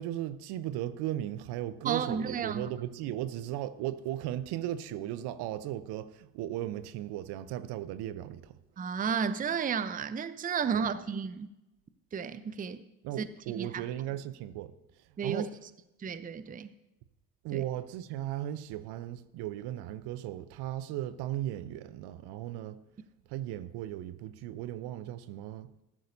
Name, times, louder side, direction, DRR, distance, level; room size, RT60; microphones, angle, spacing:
voice 1, 0.0-8.5 10.7-10.9 13.0-14.7 15.2-15.5 17.4-22.8 23.3-25.7, right 12 dB, 60° right, 0.7 m, -36 dB
voice 2, 1.8-2.7 8.8-11.5 12.1-12.8 13.2-13.3 13.6-13.9 15.2-15.5 16.0-16.7 17.5-17.6, right 6 dB, 20° right, 0.6 m, -32 dB
14.0 x 12.5 x 2.7 m
hypercardioid pair, 55°, 45 cm